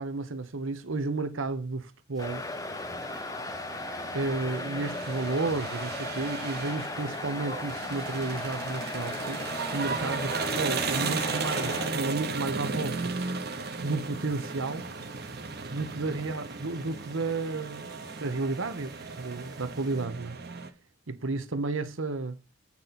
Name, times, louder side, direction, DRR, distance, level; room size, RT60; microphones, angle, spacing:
voice 1, 0.0-2.4 4.1-9.4 9.7-13.1 13.8-14.9 15.7-17.9 18.2-18.9 19.2-20.4 21.1-22.4, right 3 dB, 90° right, 1.1 m, -32 dB
sound 1, 2.1-20.1, right 3 dB, 20° right, 1.2 m, -55 dB
sound 2, 2.2-11.9, left 2 dB, 15° left, 0.6 m, -37 dB
sound 3, 2.3-20.7, right 4 dB, 50° right, 1.0 m, -36 dB
8.9 x 4.0 x 5.9 m
head